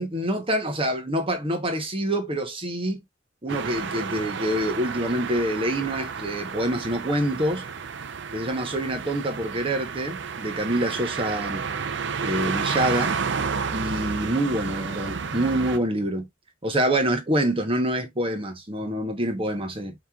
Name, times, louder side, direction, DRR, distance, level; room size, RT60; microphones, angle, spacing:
voice 1, 0.0-3.0 3.4-7.6 8.3-11.6 12.2-13.2 13.7-16.3 16.6-19.9, right 1 dB, 30° right, 1.0 m, -26 dB
sound 1, 3.5-15.8, right 5 dB, 65° right, 0.6 m, -31 dB
5.4 x 3.0 x 2.4 m
head